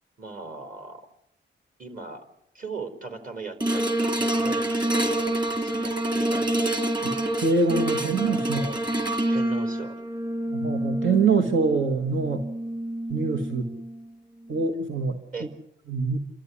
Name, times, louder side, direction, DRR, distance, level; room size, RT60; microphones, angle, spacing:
voice 1, 0.2-1.1 1.8-2.3 2.5-6.6 9.3-9.9 15.3-15.5, right 4 dB, 45° right, 6 dB, 4.4 m, -38 dB
sound 1, 3.6-14.0 14.6-14.7, right 1 dB, 25° right, 3.1 m, -27 dB
voice 2, 7.4-8.8 10.5-12.4 13.1-13.7 14.5-15.2 15.9-16.2, right 4 dB, 85° right, 4 dB, 1.9 m, -24 dB
29.0 x 13.5 x 9.9 m, 0.76 s
wide cardioid pair, 115°, 20 cm